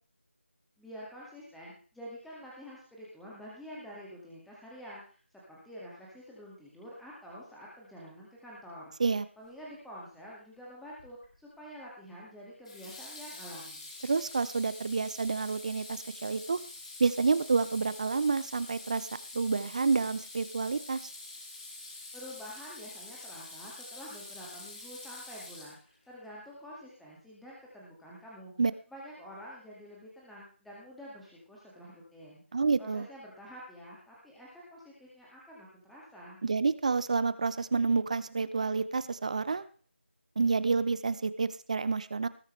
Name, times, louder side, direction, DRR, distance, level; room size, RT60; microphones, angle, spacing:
voice 1, 0.8-8.8 9.4-13.9 22.1-28.5 28.9-32.4 32.8-36.4, equal, ahead, -6 dB, 2.1 m, -48 dB
Water tap faucet / Sink (filling or washing), 11.0-11.3 12.6-26.1, left 2 dB, 30° left, 4.8 m, -46 dB
voice 2, 14.0-16.6 17.0-19.1 19.3-21.1 28.6-28.7 32.5-33.1 36.4-39.6 40.4-42.3, right 4 dB, 35° right, 15 dB, 0.8 m, -29 dB
20.0 x 9.6 x 3.3 m, 0.40 s
figure-of-eight pair, 165°, 7 cm